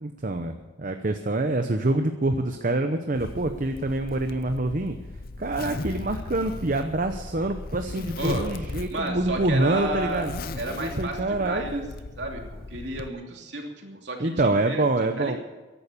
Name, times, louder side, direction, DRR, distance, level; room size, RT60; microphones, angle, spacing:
voice 1, 0.0-5.0 5.4-10.3 10.8-11.8 13.8-15.4, right 2 dB, 45° right, 6 dB, 0.8 m, -26 dB
Zipper (clothing), 3.2-13.1, left 2 dB, 50° left, 0.7 m, -37 dB
voice 2, 8.2-8.5 8.9-10.2 10.6-12.4 12.7-14.9 15.2-15.4, right 2 dB, 65° right, 1 dB, 2.9 m, -32 dB
15.0 x 11.0 x 7.2 m, 1.2 s
head